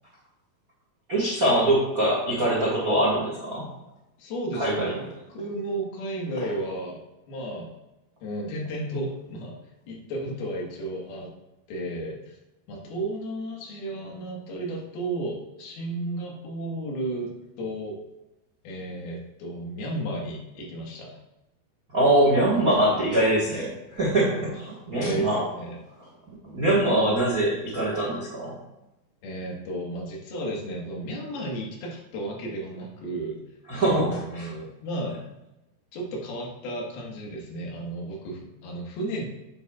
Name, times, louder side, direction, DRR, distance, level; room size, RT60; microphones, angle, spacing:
voice 1, 1.1-3.7 4.6-4.9 21.9-25.4 26.4-28.5 33.7-34.5, right 1 dB, 65° right, -5 dB, 0.8 m, -23 dB
voice 2, 4.2-7.0 7.3-7.7 8.2-9.5 9.9-11.3 11.7-12.4 12.7-18.0 18.6-21.2 22.9-23.1 24.9-25.8 29.2-33.4 33.8-35.2 35.9-39.2, right 1 dB, 75° left, -1 dB, 3.4 m, -33 dB
9.3 x 7.8 x 2.4 m, 0.93 s
omnidirectional pair, 4.6 m